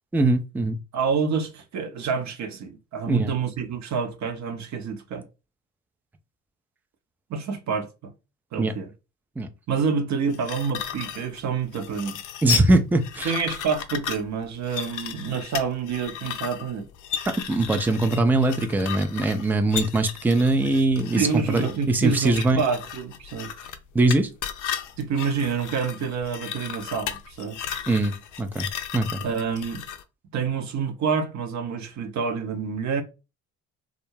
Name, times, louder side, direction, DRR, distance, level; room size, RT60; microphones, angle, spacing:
voice 1, 0.1-0.8 3.1-3.3 8.6-8.7 9.4-9.5 12.4-13.3 17.3-22.6 23.9-24.3 27.9-29.2, right 2 dB, 5° right, 0.3 m, -22 dB
voice 2, 0.9-5.2 7.3-8.1 8.5-8.9 9.7-12.2 13.2-16.9 21.2-23.5 25.0-27.7 29.2-29.8 30.3-33.0, right 6 dB, 40° right, 0.7 m, -28 dB
sound 1, 10.3-30.0, left 9 dB, 45° left, 0.5 m, -35 dB
2.4 x 2.0 x 3.1 m
hypercardioid pair, 50°, 42 cm